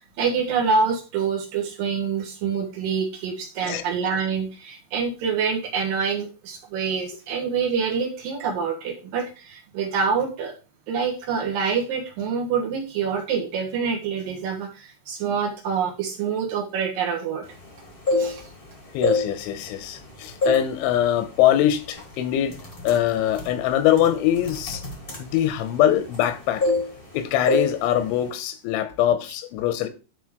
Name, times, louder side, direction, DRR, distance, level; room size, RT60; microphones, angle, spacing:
voice 1, 0.2-10.5 10.9-17.4 18.2-18.5, right 6 dB, 65° right, 2.4 m, -26 dB
sound 1, 17.8-18.6 18.9-20.0 20.4-20.7 21.1-21.4 22.0-22.1 22.5-26.3 26.6-27.2 27.5-27.7 28.0-28.3, left 2 dB, 40° left, 0.7 m, -25 dB
voice 2, 18.9-22.6 22.8-24.8 25.2-26.6 27.1-29.9, left 11 dB, 85° left, 3.2 m, -23 dB
11.0 x 4.0 x 4.9 m
omnidirectional pair, 5.5 m